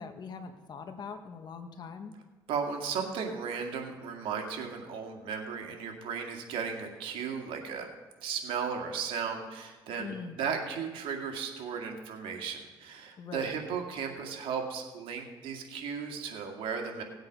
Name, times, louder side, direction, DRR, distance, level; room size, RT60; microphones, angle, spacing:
voice 1, 0.0-2.1 10.0-10.4 13.2-13.5, left 5 dB, 50° left, 6 dB, 1.5 m, -42 dB
voice 2, 2.5-7.9 8.2-17.0, right 6 dB, 75° right, 3 dB, 2.1 m, -35 dB
18.0 x 8.0 x 5.4 m, 1.3 s
cardioid pair, 90°, 9 cm